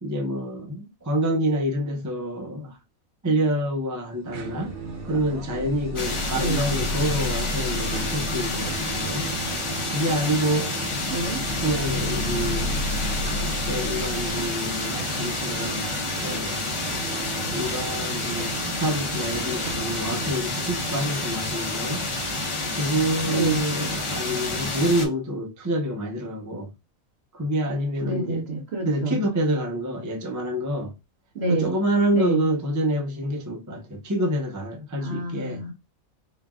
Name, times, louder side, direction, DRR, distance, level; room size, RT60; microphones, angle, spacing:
voice 1, 0.0-2.8 3.2-4.7 5.1-9.3 9.9-10.7 11.6-12.8 13.2-15.9 16.2-16.8 17.4-22.0 22.7-26.7 27.3-28.5 28.9-30.9 31.5-35.6, right 1 dB, 25° right, 0.3 m, -27 dB
sound 1, 4.3-20.3, right 4 dB, 90° right, 1.2 m, -38 dB
sound 2, 4.4-14.5, left 2 dB, 75° left, 1.0 m, -33 dB
sound 3, 6.0-25.1, left 2 dB, 30° left, 0.7 m, -29 dB
voice 2, 6.3-6.7 11.1-11.5 23.3-23.6 28.0-29.2 31.4-31.7 32.1-32.4 35.0-35.7, right 2 dB, 50° right, 1.6 m, -28 dB
3.9 x 2.3 x 3.5 m
omnidirectional pair, 1.4 m